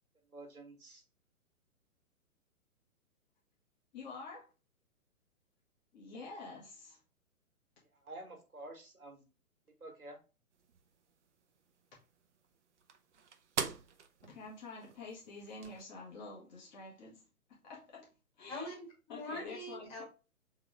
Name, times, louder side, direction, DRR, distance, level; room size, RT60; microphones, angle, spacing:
voice 1, 0.3-1.0 8.0-9.2 9.8-10.2, right 2 dB, 75° right, 4 dB, 1.5 m, -49 dB
voice 2, 3.9-4.5 5.9-7.0 14.2-17.2 17.6-18.1 18.4-18.7 19.1-19.9, left 3 dB, 30° left, -3 dB, 1.6 m, -48 dB
sound 1, 10.5-15.8, right 6 dB, 55° right, 0.7 m, -45 dB
voice 3, 18.5-20.0, left 1 dB, 15° left, -4 dB, 1.8 m, -43 dB
3.7 x 3.6 x 3.3 m, 0.32 s
figure-of-eight pair, 125°, 43 cm